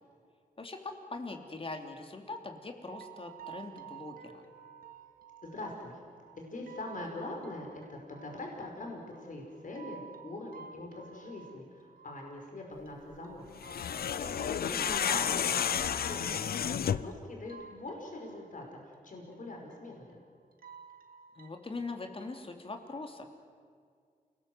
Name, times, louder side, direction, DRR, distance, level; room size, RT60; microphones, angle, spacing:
voice 1, 0.6-4.4 14.7-15.0 21.3-23.2, left 3 dB, 35° left, 4 dB, 3.1 m, -42 dB
sound 1, 2.9-22.5, right 8 dB, 70° right, 2.0 m, -54 dB
voice 2, 5.4-6.0 6.4-13.4 13.9-20.2, left 2 dB, 60° left, 1 dB, 5.2 m, -43 dB
sound 2, 13.6-17.2, left 8 dB, 85° left, 0.7 m, -31 dB
28.5 x 20.0 x 8.0 m, 2.1 s
wide cardioid pair, 90°, 15 cm